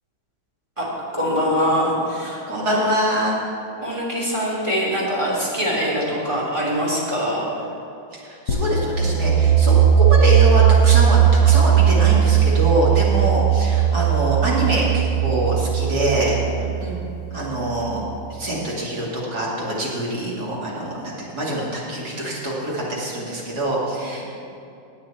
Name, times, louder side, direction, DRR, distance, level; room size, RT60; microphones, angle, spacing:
voice 1, 1.1-2.4 2.7-2.8 3.8-7.4 13.2-13.3 16.6-17.0, equal, 15° right, -5 dB, 3.1 m, -23 dB
voice 2, 2.5-3.4 8.1-16.4 17.3-18.0 18.3-24.2, right 1 dB, 50° right, -5 dB, 3.1 m, -24 dB
sound 1, 8.5-18.1, right 9 dB, 85° left, 1.9 m, -18 dB
18.0 x 8.8 x 4.3 m, 2.7 s
omnidirectional pair, 2.2 m